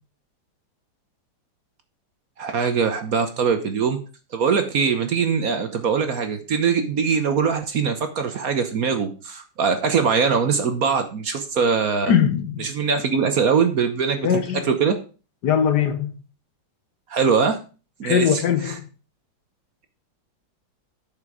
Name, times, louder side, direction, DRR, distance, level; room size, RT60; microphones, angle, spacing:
voice 1, 2.4-4.0 4.3-12.1 12.6-15.0 17.1-17.6 18.0-18.7, right 6 dB, 55° right, 1.2 m, -22 dB
voice 2, 12.1-12.7 14.2-14.7 15.4-16.1 18.0-18.9, left 8 dB, 65° left, 1.4 m, -21 dB
8.7 x 6.7 x 4.8 m
omnidirectional pair, 2.1 m